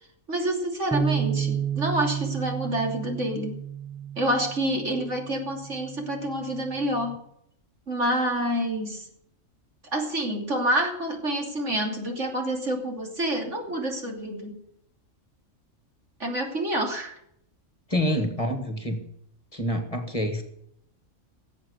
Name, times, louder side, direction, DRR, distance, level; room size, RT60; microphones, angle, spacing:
voice 1, 0.3-3.6 4.2-7.2 7.9-9.1 9.9-14.6 16.2-17.2, right 1 dB, 65° right, 2 dB, 3.4 m, -28 dB
sound 1, 0.9-7.2, right 7 dB, 5° right, 0.6 m, -32 dB
voice 2, 17.9-19.0 19.5-20.4, equal, 25° left, 6 dB, 1.9 m, -27 dB
17.5 x 8.0 x 8.2 m, 0.72 s
omnidirectional pair, 1.4 m